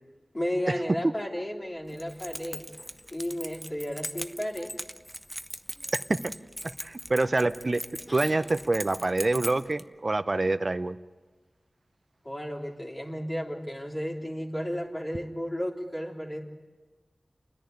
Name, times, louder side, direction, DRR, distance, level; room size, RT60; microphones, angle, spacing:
voice 1, 0.3-2.7 3.1-4.7 12.2-16.4, equal, 25° left, -3 dB, 3.4 m, -33 dB
Keys jangling, 1.9-9.8, equal, ahead, 0.7 m, -40 dB
voice 2, 6.6-7.8 8.1-11.0, right 2 dB, 40° right, 13 dB, 0.6 m, -26 dB
29.5 x 10.5 x 9.5 m, 1.3 s
wide cardioid pair, 80°, 0 cm